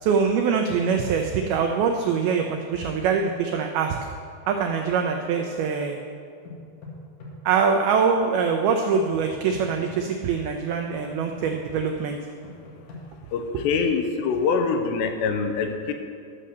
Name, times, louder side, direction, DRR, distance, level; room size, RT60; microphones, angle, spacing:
voice 1, 0.0-4.0 4.5-6.0 7.5-12.2, right 6 dB, 85° right, 3 dB, 2.1 m, -23 dB
sound 1, 6.4-7.3 9.2-9.9 11.0-11.5 12.4-13.0, left 4 dB, 55° left, 2.9 m, -41 dB
voice 2, 13.3-15.9, left 5 dB, 80° left, 5 dB, 2.9 m, -24 dB
12.0 x 6.6 x 6.5 m, 2.3 s
omnidirectional pair, 5.1 m